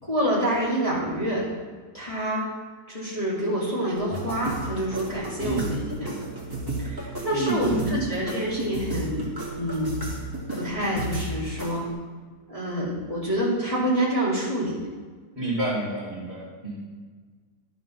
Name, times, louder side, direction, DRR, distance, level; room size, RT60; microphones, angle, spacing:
voice 1, 0.0-1.5 1.9-2.4 2.9-6.1 6.8-9.3 9.6-9.9 10.5-11.8 12.5-14.8, right 1 dB, 20° left, -8 dB, 2.3 m, -27 dB
sound 1, 3.9-11.9, right 2 dB, 10° right, 2.2 m, -33 dB
voice 2, 7.3-8.1 15.3-16.8, right 2 dB, 35° right, -5 dB, 2.5 m, -29 dB
11.0 x 5.3 x 5.8 m, 1.5 s
omnidirectional pair, 1.9 m